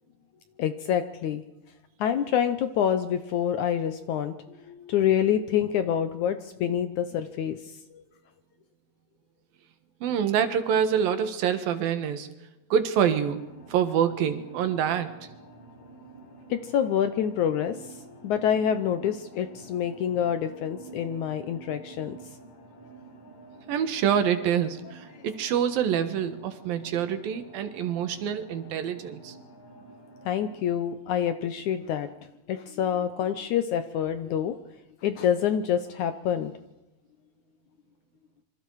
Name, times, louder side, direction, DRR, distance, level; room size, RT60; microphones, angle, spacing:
voice 1, 0.6-1.4 2.0-4.3 4.7-8.0 16.5-22.2 30.3-32.1 32.5-34.6 35.0-36.5, left 9 dB, 70° left, 10 dB, 1.9 m, -27 dB
voice 2, 10.0-12.3 12.7-13.4 13.7-15.1 23.7-29.3, right 8 dB, 75° right, 9 dB, 3.2 m, -26 dB
sound 1, 13.4-30.6, right 3 dB, 50° left, 6.6 m, -49 dB
27.0 x 25.0 x 4.8 m, 1.0 s
omnidirectional pair, 4.2 m